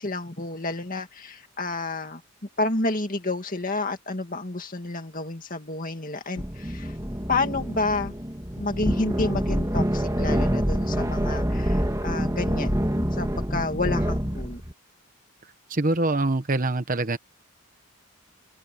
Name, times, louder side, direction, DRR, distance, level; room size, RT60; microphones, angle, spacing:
voice 1, 0.0-2.2 2.6-7.0 7.3-8.1 8.6-12.8 13.1-14.6, left 2 dB, 40° left, 2.2 m, -30 dB
sound 1, 6.4-14.7, equal, 15° right, 2.3 m, -26 dB
voice 2, 15.7-17.2, right 2 dB, 40° right, 1.0 m, -24 dB
open air
head